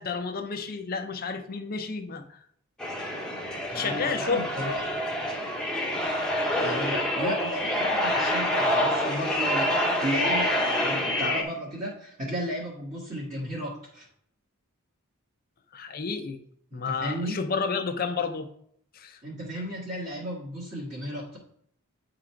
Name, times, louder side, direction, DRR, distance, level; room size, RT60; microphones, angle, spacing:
voice 1, 0.0-2.4 3.7-4.5 15.7-16.4 16.7-18.5 18.9-19.2, left 5 dB, 40° left, 5 dB, 0.7 m, -31 dB
sound 1, 2.8-11.4, left 1 dB, 5° left, 1.0 m, -27 dB
voice 2, 3.7-5.0 6.6-14.1 16.7-17.4 19.2-21.4, equal, 35° right, -6 dB, 1.6 m, -34 dB
8.5 x 3.8 x 4.5 m, 0.65 s
head